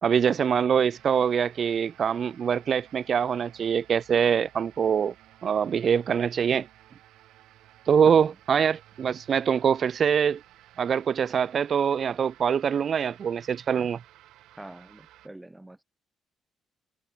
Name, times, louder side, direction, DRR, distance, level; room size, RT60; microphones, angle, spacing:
voice 1, 0.0-5.1 5.4-6.7 7.9-10.4 10.8-14.0, right 7 dB, 55° right, 0.5 m, -24 dB
sound 1, 0.9-15.3, right 14 dB, 80° right, 4.1 m, -55 dB
voice 2, 14.6-15.8, right 1 dB, 10° right, 5.1 m, -45 dB
supercardioid pair, 70°, 0 cm